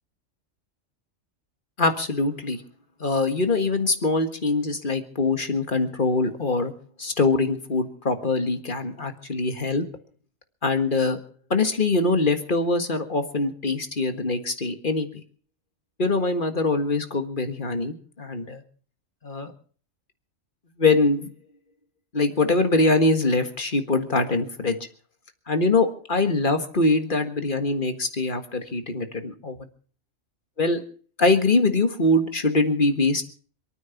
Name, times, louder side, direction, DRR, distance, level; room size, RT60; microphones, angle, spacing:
voice 1, 1.8-2.6 3.0-6.7 7.0-9.8 10.6-11.2 11.5-15.1 16.0-18.6 19.2-19.5 20.8-21.3 22.1-24.8 25.5-29.6 30.6-30.8 31.2-33.3, left 3 dB, 40° left, 8 dB, 1.8 m, -23 dB
26.5 x 9.4 x 5.8 m, 0.43 s
omnidirectional pair, 1.4 m